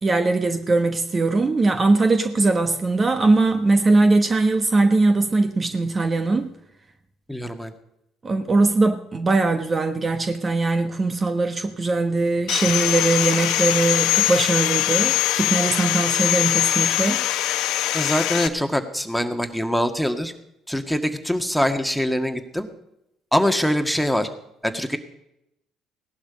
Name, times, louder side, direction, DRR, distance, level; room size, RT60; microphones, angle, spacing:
voice 1, 0.0-6.5 8.2-17.3, right 3 dB, 35° right, 8 dB, 1.2 m, -20 dB
voice 2, 7.3-7.7 17.9-20.3 20.7-22.7 23.3-24.3 24.6-25.0, equal, ahead, 6 dB, 1.8 m, -23 dB
Sawing, 12.5-18.5, left 14 dB, 70° left, 0.9 m, -22 dB
17.0 x 11.5 x 5.2 m, 0.83 s
hypercardioid pair, 60°, 0 cm